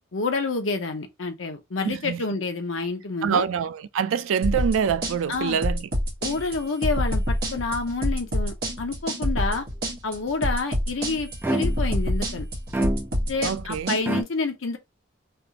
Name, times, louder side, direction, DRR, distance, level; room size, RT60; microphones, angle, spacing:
voice 1, 0.1-3.4 5.3-5.6 6.2-9.6 10.0-12.5 13.3-14.8, left 3 dB, 75° left, 0.8 m, -28 dB
voice 2, 1.8-2.2 3.2-5.9 13.4-14.0, right 7 dB, 85° right, 0.3 m, -25 dB
sound 1, 4.4-14.0, equal, 50° right, 1.3 m, -26 dB
sound 2, 11.4-12.0 12.7-13.4 14.1-14.2, right 1 dB, 10° right, 0.4 m, -27 dB
3.4 x 2.4 x 2.8 m
head